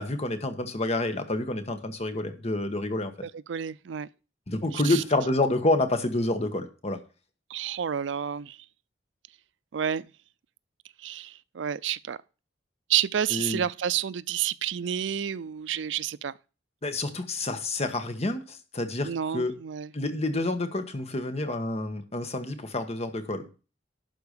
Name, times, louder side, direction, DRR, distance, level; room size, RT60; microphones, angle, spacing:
voice 1, 0.0-3.1 4.5-7.0 13.3-13.6 16.8-19.5 19.9-23.5, left 2 dB, 35° left, 1.5 m, -28 dB
voice 2, 3.2-4.1 4.7-5.0 7.5-8.6 9.7-10.1 11.0-12.2 12.9-16.3 19.0-19.9, right 9 dB, 80° right, 0.4 m, -30 dB
12.0 x 4.6 x 6.7 m
head